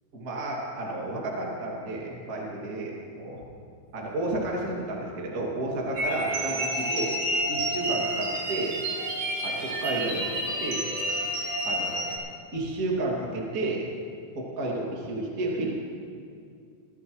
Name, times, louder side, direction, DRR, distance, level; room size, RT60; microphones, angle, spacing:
voice 1, 0.1-3.4 3.9-7.1 7.5-8.8 9.4-10.9 11.6-12.1 12.5-13.9 14.3-15.7, right 2 dB, 70° right, -3 dB, 0.8 m, -31 dB
sound 1, 5.9-12.2, right 1 dB, 55° right, 5.6 m, -29 dB
23.0 x 14.0 x 3.2 m, 2.4 s
omnidirectional pair, 6.0 m